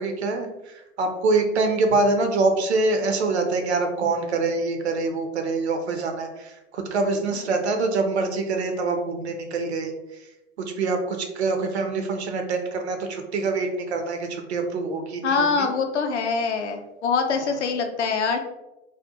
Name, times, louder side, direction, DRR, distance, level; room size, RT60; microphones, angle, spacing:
voice 1, 0.0-9.9 10.6-15.7, right 3 dB, 65° right, 4 dB, 0.5 m, -25 dB
voice 2, 15.2-18.4, left 5 dB, 70° left, 4 dB, 0.5 m, -24 dB
2.4 x 2.1 x 2.7 m, 0.96 s
figure-of-eight pair, 95°, 36 cm